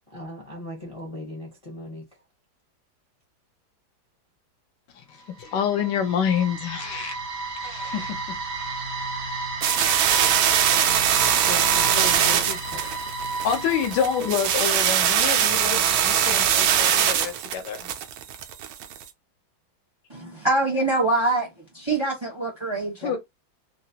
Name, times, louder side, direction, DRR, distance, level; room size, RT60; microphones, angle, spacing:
voice 1, 0.1-2.0 11.1-12.8, left 2 dB, 25° left, 0.7 m, -37 dB
voice 2, 4.9-7.2 7.6-8.2 8.6-8.7 12.8-12.9 13.4-17.9 23.0-23.2, left 8 dB, 70° left, 1.3 m, -27 dB
sound 1, 5.2-15.3, right 3 dB, 50° right, 0.9 m, -32 dB
sound 2, 9.6-19.0, right 9 dB, 85° right, 1.4 m, -22 dB
voice 3, 20.1-21.5 21.7-23.2, right 2 dB, 25° right, 0.7 m, -24 dB
3.8 x 2.1 x 2.7 m
omnidirectional pair, 2.2 m